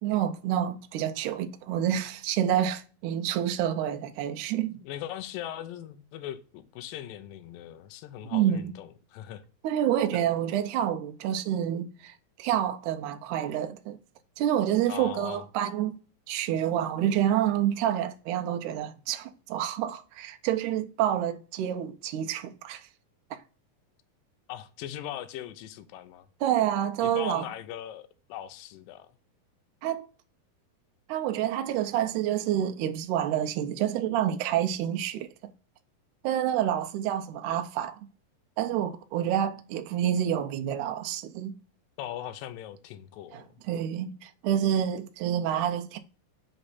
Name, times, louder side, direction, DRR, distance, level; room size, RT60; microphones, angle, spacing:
voice 1, 0.0-4.8 8.3-8.7 9.6-14.0 14.4-15.9 16.3-22.9 23.3-23.4 26.4-27.5 29.8-30.1 31.1-35.3 36.2-38.0 38.6-41.5 43.3-46.0, right 10 dB, 90° right, 1.8 m, -28 dB
voice 2, 4.8-9.4 14.9-15.4 24.5-26.3 27.0-29.1 42.0-43.5, left 12 dB, 80° left, 2.3 m, -40 dB
7.8 x 3.3 x 4.1 m
omnidirectional pair, 4.2 m